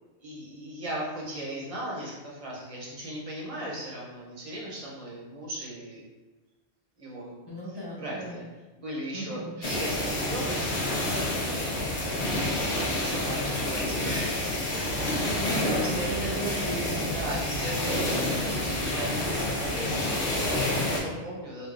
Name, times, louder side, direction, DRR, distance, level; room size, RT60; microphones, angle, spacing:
voice 1, 0.2-6.0 7.0-7.3 7.7-8.4 8.7-11.4 12.8-16.4 17.1-21.7, right 1 dB, 35° right, -4 dB, 0.9 m, -38 dB
voice 2, 7.5-8.4 9.1-9.5 12.4-12.8 15.3-17.4, right 1 dB, 25° left, -6 dB, 0.7 m, -35 dB
sound 1, 9.6-21.0, left 1 dB, 60° left, 0.9 m, -28 dB
4.7 x 2.4 x 2.5 m, 1.2 s
omnidirectional pair, 1.2 m